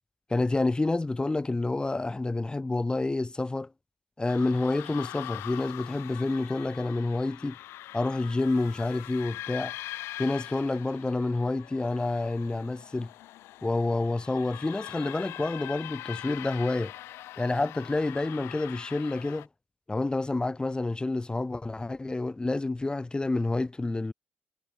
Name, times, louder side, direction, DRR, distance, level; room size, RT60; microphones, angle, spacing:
voice 1, 0.3-3.7 4.2-7.6 7.9-9.7 10.2-13.1 13.6-16.9 17.4-19.5 19.9-24.1, left 2 dB, 20° left, 6.0 m, -28 dB
sound 1, 4.3-19.5, left 15 dB, 85° left, 7.4 m, -43 dB
supercardioid pair, 60°, 4 cm